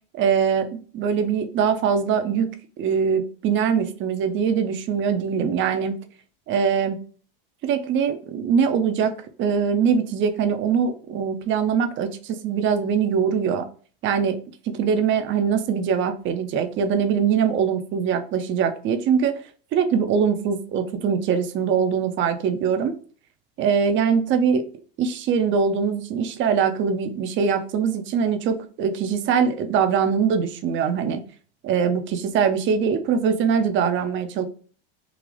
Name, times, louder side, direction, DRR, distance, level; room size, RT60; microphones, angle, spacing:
voice 1, 0.1-6.0 6.5-7.0 7.6-13.7 14.0-14.4 14.7-19.4 19.7-22.9 23.6-24.7 25.0-31.2 31.6-34.5, right 6 dB, 40° right, 8 dB, 0.7 m, -22 dB
3.8 x 2.4 x 3.2 m, 0.41 s
supercardioid pair, 110°, 30 cm